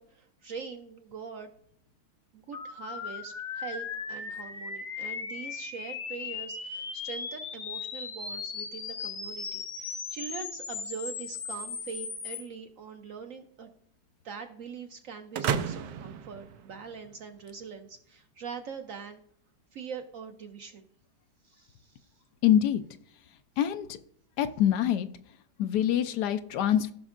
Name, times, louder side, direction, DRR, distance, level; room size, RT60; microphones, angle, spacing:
voice 1, 0.0-1.5 2.3-13.7 14.2-19.2 19.7-20.9 21.4-22.1, right 6 dB, 65° right, 6 dB, 0.8 m, -43 dB
sound 1, 2.5-12.4, left 5 dB, 50° left, 1.1 m, -37 dB
sound 2, 15.3-17.3, right 7 dB, 80° right, 1.3 m, -33 dB
voice 2, 22.4-22.8 23.6-24.0 24.4-25.1 25.6-26.9, left 10 dB, 75° left, 10 dB, 1.1 m, -25 dB
15.0 x 6.1 x 2.5 m, 0.65 s
omnidirectional pair, 1.9 m